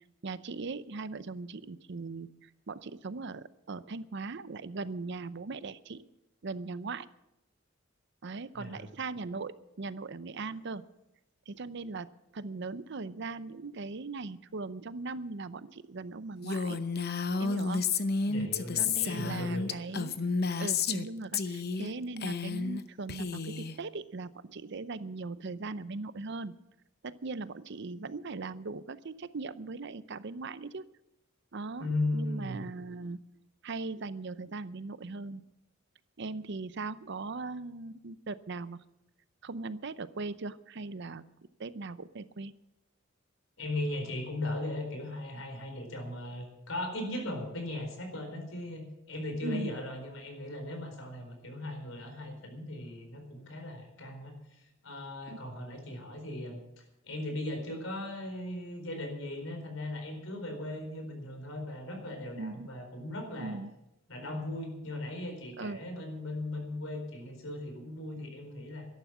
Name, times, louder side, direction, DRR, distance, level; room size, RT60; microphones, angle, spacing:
voice 1, 0.2-6.0 6.4-7.1 8.2-10.8 11.5-16.8 17.4-17.8 18.8-20.2 20.6-26.5 27.0-30.9 31.5-31.9 32.1-33.2 33.6-35.4 36.2-38.8 39.4-41.2 41.6-42.5 49.4-49.8 55.3-55.4 62.4-62.7 63.4-63.7 65.6-65.8, right 3 dB, 60° right, 15 dB, 0.7 m, -39 dB
voice 2, 8.5-8.9 18.3-19.7 31.8-32.6 43.6-56.6 57.0-63.6 64.1-68.9, left 1 dB, 90° left, 4 dB, 4.3 m, -38 dB
Female speech woman speaking, 16.4-21.1 21.3-21.9 22.2-22.8 23.1-23.7, left 5 dB, 55° left, 0.8 m, -31 dB
13.0 x 11.5 x 7.3 m, 0.89 s
head